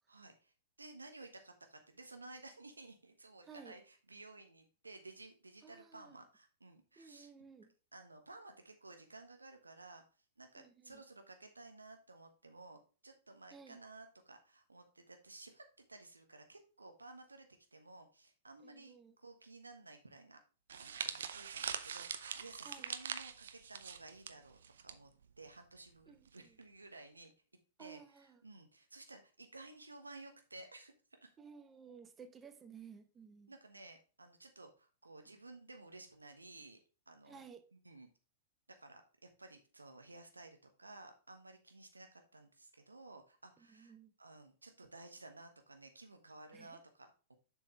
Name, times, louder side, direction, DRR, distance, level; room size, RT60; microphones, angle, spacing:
voice 1, 0.1-7.3 7.9-10.0 10.4-15.6 15.9-20.4 20.7-25.1 25.4-27.3 27.8-31.3 33.5-36.8 37.1-37.4 37.7-38.1 38.7-43.9 44.2-47.4, right 2 dB, 85° right, 1.2 m, -55 dB
voice 2, 5.6-6.2 7.0-7.7 10.6-11.0 13.5-13.8 18.6-19.1 22.6-22.9 26.1-26.6 27.8-28.4 31.4-33.5 37.3-37.6 43.7-44.1 46.5-46.8, right 6 dB, 20° right, 0.9 m, -56 dB
sound 1, 20.7-25.0 25.2-25.5 26.3-26.6, right 7 dB, 70° right, 0.7 m, -43 dB
7.3 x 6.3 x 3.2 m
figure-of-eight pair, 105°, 0 cm